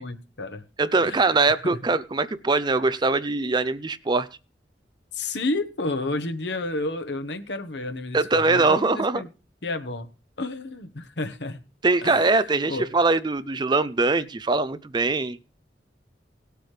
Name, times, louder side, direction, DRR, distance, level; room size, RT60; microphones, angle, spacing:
voice 1, 0.0-0.6 1.0-1.3 1.6-1.8 5.1-9.3 9.6-10.1 10.4-11.6 12.0-12.3 12.7-12.9, left 2 dB, 75° left, 8 dB, 1.2 m, -31 dB
voice 2, 0.8-4.3 8.1-9.2 11.8-15.4, right 3 dB, 25° right, 15 dB, 0.5 m, -22 dB
18.0 x 8.1 x 3.3 m, 0.32 s
head